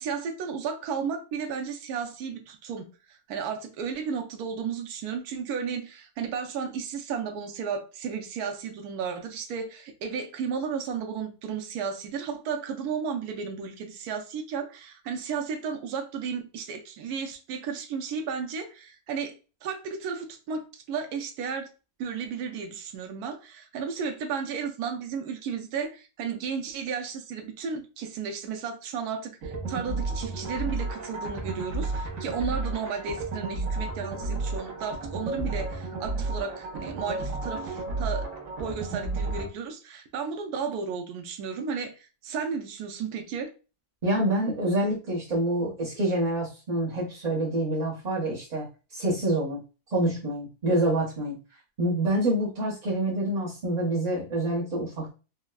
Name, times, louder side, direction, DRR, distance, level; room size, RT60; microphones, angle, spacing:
voice 1, 0.0-21.7 22.0-38.3 38.6-43.5, right 6 dB, 80° right, 1.1 m, -33 dB
sound 1, 29.4-39.5, right 3 dB, 65° right, 1.2 m, -32 dB
voice 2, 44.0-49.6 49.9-51.4 51.8-55.1, right 1 dB, 40° right, 0.6 m, -27 dB
4.3 x 2.1 x 2.2 m
omnidirectional pair, 1.6 m